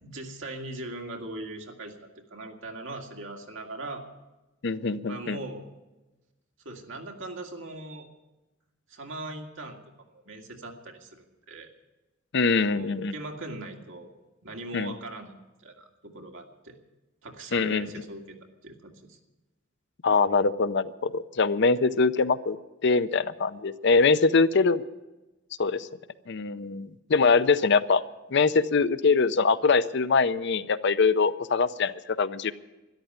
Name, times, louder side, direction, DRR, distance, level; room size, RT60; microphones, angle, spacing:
voice 1, 0.0-4.0 5.1-5.7 6.7-8.1 8.9-9.8 10.3-11.7 12.7-14.1 14.4-15.3 15.6-16.7 17.2-18.4 18.6-19.2, right 2 dB, 70° right, 2 dB, 2.0 m, -40 dB
voice 2, 4.6-5.4 12.3-13.1 14.7-14.9 17.5-17.9 20.0-22.6 22.8-24.8 25.6-25.9 26.3-28.0 28.3-32.5, left 4 dB, 60° left, 14 dB, 0.6 m, -23 dB
13.0 x 11.0 x 9.3 m, 1.1 s
head